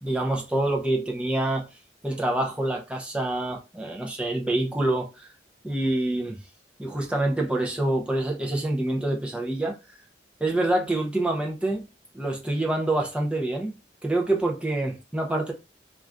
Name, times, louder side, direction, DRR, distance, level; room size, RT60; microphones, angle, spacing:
voice 1, 0.0-1.6 2.0-5.3 5.6-6.4 6.8-9.8 10.4-11.8 12.1-13.8 14.0-15.5, right 1 dB, 5° right, 0.5 m, -26 dB
2.5 x 2.3 x 3.3 m
head